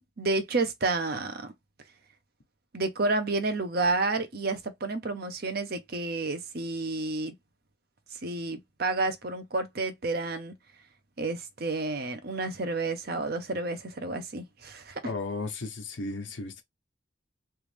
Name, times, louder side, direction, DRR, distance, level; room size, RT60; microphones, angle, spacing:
voice 1, 0.0-1.5 2.7-7.3 8.2-10.5 11.2-15.0, right 3 dB, 55° right, 0.8 m, -30 dB
voice 2, 15.0-16.6, left 3 dB, 90° left, 1.0 m, -34 dB
3.4 x 3.1 x 3.3 m
head